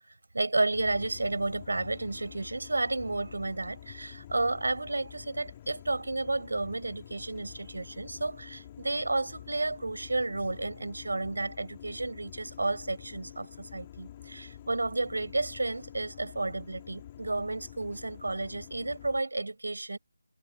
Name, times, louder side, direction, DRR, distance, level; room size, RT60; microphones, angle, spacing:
voice 1, 0.3-20.0, right 2 dB, 75° right, 6.0 m, -32 dB
sound 1, 0.7-19.2, left 11 dB, 20° left, 2.3 m, -48 dB
figure-of-eight pair, 165°, 0 cm